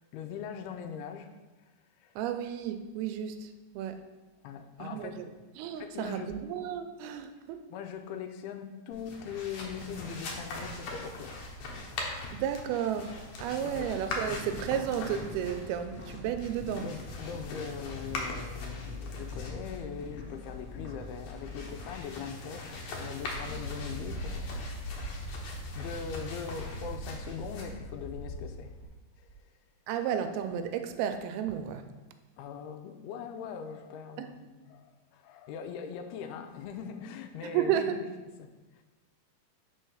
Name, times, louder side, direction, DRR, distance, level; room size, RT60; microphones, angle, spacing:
voice 1, 0.0-1.3 2.0-2.1 4.4-5.2 5.8-6.3 7.7-11.4 13.6-13.9 16.8-25.1 25.5-28.7 29.2-29.3 32.4-34.4 34.7-38.8, left 7 dB, 90° left, 7 dB, 2.6 m, -41 dB
voice 2, 2.2-4.0 4.8-5.3 5.6-7.6 12.3-16.9 29.9-31.9 34.2-34.3 37.4-38.0, right 9 dB, 85° right, 8 dB, 2.4 m, -33 dB
sound 1, 8.9-28.8, left 2 dB, 65° left, 2.0 m, -40 dB
sound 2, 13.7-22.0, left 3 dB, 40° left, 2.4 m, -44 dB
5.4 x 4.5 x 6.3 m, 1.2 s
omnidirectional pair, 4.4 m